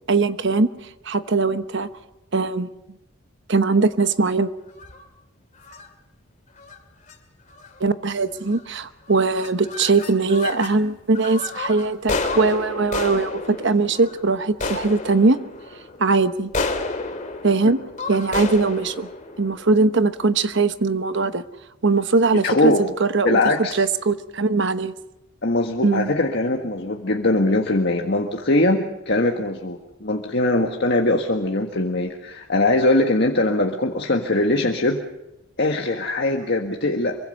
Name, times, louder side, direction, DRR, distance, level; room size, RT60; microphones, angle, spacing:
voice 1, 0.1-0.7 1.0-1.9 2.3-2.7 3.5-4.5 7.8-15.4 16.0-16.5 17.4-17.8 18.1-19.1 19.4-21.4 21.8-23.4 23.7-24.9 25.8-26.1, right 3 dB, 60° right, 11 dB, 1.0 m, -20 dB
sound 1, 4.7-5.1 5.6-5.9 6.6-6.8 7.1-7.2 7.5-7.9 8.4-8.8 9.1-10.8 11.1-20.3, left 3 dB, 35° left, 2.4 m, -31 dB
voice 2, 22.4-22.8 23.2-23.8 25.4-35.0 35.6-37.2, left 2 dB, 55° left, 2 dB, 1.7 m, -21 dB
25.5 x 24.0 x 5.5 m, 0.90 s
head